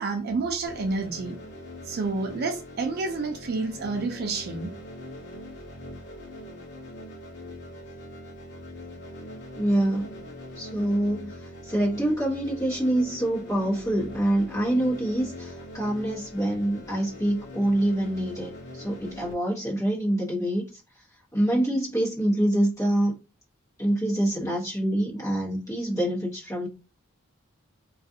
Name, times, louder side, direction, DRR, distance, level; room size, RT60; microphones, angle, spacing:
voice 1, 0.0-1.4 1.9-4.7, right 3 dB, 50° right, 0.4 m, -29 dB
sound 1, 0.7-19.3, left 1 dB, 55° left, 0.6 m, -42 dB
voice 2, 9.6-10.1 10.5-11.3 11.6-20.8 21.3-23.1 23.8-26.7, right 1 dB, 15° left, 1.1 m, -26 dB
2.4 x 2.4 x 2.6 m
head